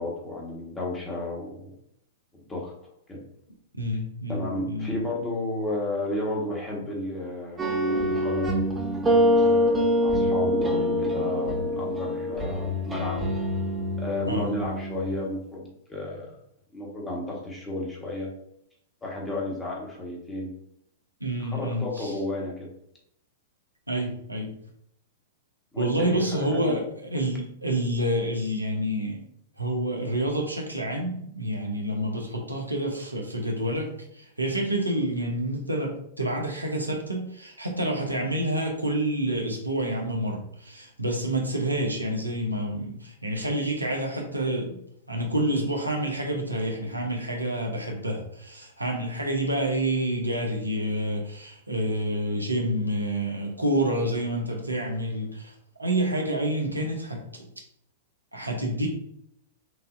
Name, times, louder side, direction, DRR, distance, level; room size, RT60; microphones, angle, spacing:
voice 1, 0.0-1.7 2.3-2.7 3.1-3.2 4.3-9.4 10.0-13.3 14.0-16.3 16.7-18.3 19.0-20.5 21.4-22.7 25.7-26.2 26.5-26.8, left 1 dB, 15° left, -3 dB, 1.5 m, -32 dB
voice 2, 3.8-4.9 14.3-14.6 21.2-22.1 23.9-24.6 25.8-29.2 29.6-44.8 45.1-57.5 58.3-58.9, right 1 dB, 90° right, 1 dB, 0.9 m, -28 dB
sound 1, 7.6-15.2, equal, 15° right, 1.0 m, -25 dB
6.0 x 2.7 x 2.6 m, 0.73 s
figure-of-eight pair, 100°, 0 cm